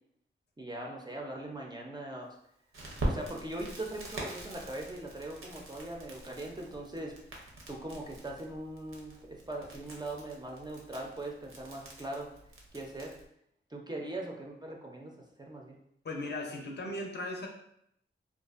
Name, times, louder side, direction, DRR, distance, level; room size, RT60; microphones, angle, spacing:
voice 1, 0.6-2.4 3.0-7.1 7.7-12.3 12.7-13.1 13.7-15.1 15.4-15.8, right 1 dB, 20° right, -1 dB, 0.4 m, -40 dB
Crackle, 2.7-13.3, right 1 dB, 80° right, 0.6 m, -43 dB
voice 2, 16.0-17.5, left 1 dB, 55° left, 1 dB, 0.5 m, -37 dB
2.4 x 2.3 x 2.3 m, 0.74 s
wide cardioid pair, 95°, 21 cm